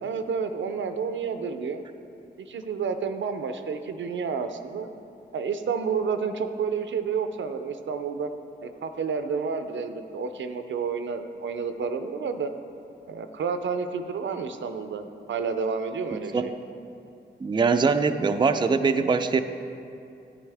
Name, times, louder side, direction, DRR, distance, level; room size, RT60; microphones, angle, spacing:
voice 1, 0.0-1.8 2.4-4.9 5.3-8.3 8.6-12.5 13.1-16.5, right 5 dB, 75° right, 8 dB, 0.5 m, -30 dB
voice 2, 16.1-16.5 17.4-19.4, right 4 dB, 25° right, 8 dB, 0.4 m, -23 dB
9.8 x 8.9 x 3.4 m, 2.6 s
cardioid pair, 60°, 19 cm